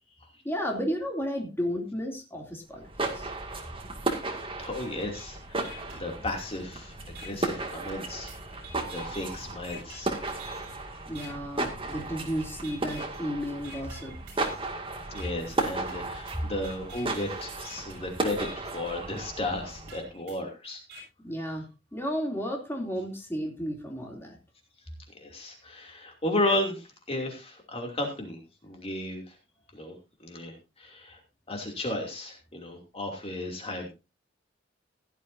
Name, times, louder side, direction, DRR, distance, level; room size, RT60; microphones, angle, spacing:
voice 1, 0.4-3.3 11.1-14.2 21.2-21.6 21.9-24.4, equal, 15° left, 0 dB, 2.9 m, -33 dB
sound 1, 2.7-20.1, right 2 dB, 30° right, 2.2 m, -35 dB
voice 2, 4.6-10.2 15.1-20.8 25.1-29.2 29.7-29.9 30.2-31.2 31.5-33.9, left 1 dB, 30° left, 2 dB, 2.8 m, -34 dB
sound 2, 5.1-5.2 5.6-6.7 7.1-7.3 7.9-10.7 11.1-11.3 11.9-12.3 12.6-13.2 13.6-14.7 15.1-15.3 15.9-18.7 19.1-19.3 19.9-21.0, right 2 dB, 60° right, 6.9 m, -47 dB
16.5 x 11.5 x 2.7 m, 0.27 s
head